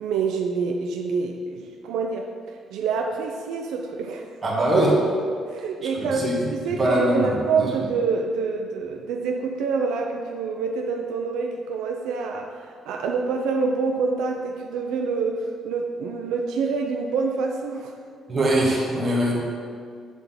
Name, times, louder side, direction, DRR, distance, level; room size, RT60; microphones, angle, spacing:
voice 1, 0.0-2.3 2.7-4.3 5.5-17.9, right 4 dB, 90° right, 2 dB, 0.6 m, -26 dB
voice 2, 4.4-4.9 6.0-6.3 6.6-7.7 18.3-19.4, right 1 dB, 25° right, -4 dB, 1.5 m, -22 dB
8.1 x 3.6 x 5.6 m, 2.1 s
cardioid pair, 170°, 0 cm